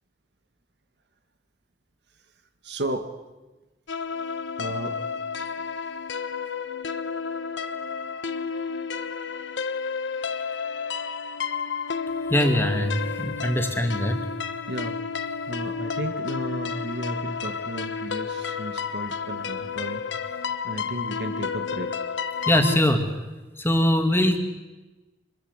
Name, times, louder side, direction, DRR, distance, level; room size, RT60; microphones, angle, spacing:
voice 1, 2.6-3.1 4.6-5.0 14.7-15.0 15.5-20.0 20.6-22.0, right 1 dB, 65° right, 6 dB, 2.0 m, -33 dB
sound 1, 3.9-22.8, left 5 dB, 80° left, 1.2 m, -31 dB
voice 2, 12.3-14.2 22.5-23.0 23.6-24.4, equal, 10° left, 5 dB, 2.5 m, -22 dB
27.0 x 21.5 x 8.2 m, 1.1 s
head